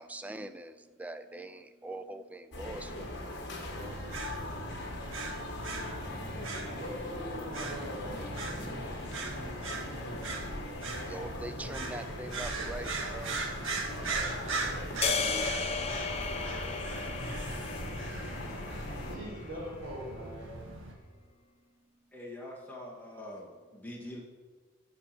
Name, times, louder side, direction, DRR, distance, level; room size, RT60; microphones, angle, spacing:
voice 1, 0.0-6.8 8.6-13.4, right 1 dB, 5° right, 9 dB, 0.4 m, -46 dB
sound 1, 2.5-19.2, left 1 dB, 55° left, 1.6 m, -40 dB
voice 2, 3.6-4.8 6.7-8.9 12.6-14.8 15.2-15.9 19.1-20.6, equal, 45° right, -10 dB, 3.4 m, -45 dB
sound 2, 3.6-20.9, right 3 dB, 70° right, 1.5 m, -40 dB
sound 3, 15.0-19.4, left 4 dB, 30° left, 0.7 m, -35 dB
voice 3, 22.1-24.2, left 1 dB, 10° left, -4 dB, 1.7 m, -44 dB
9.7 x 6.7 x 6.0 m, 1.4 s
head